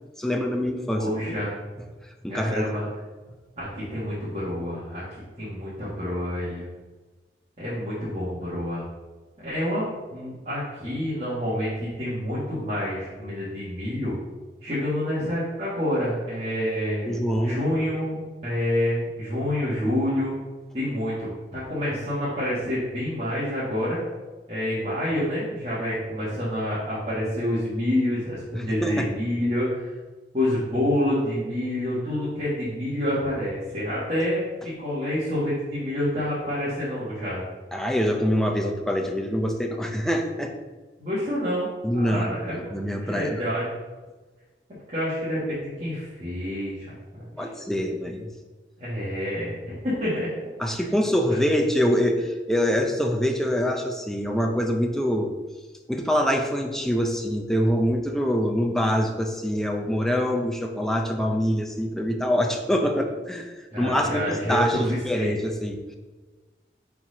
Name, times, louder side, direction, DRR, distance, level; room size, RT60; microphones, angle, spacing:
voice 1, 0.2-1.1 2.2-2.8 17.1-17.7 28.5-29.1 37.7-40.5 41.8-43.4 47.4-48.3 50.6-55.3 55.9-65.8, equal, 5° left, 2 dB, 0.5 m, -25 dB
voice 2, 1.0-1.5 2.3-2.8 3.5-5.0 5.4-6.7 7.6-8.8 9.4-14.2 14.6-20.3 20.7-24.0 24.5-29.9 30.3-37.4 41.0-42.5 42.8-43.8 44.9-47.5 48.8-50.3 50.8-50.9 63.7-65.3, left 1 dB, 35° right, -10 dB, 1.6 m, -28 dB
4.5 x 4.2 x 5.0 m, 1.3 s
head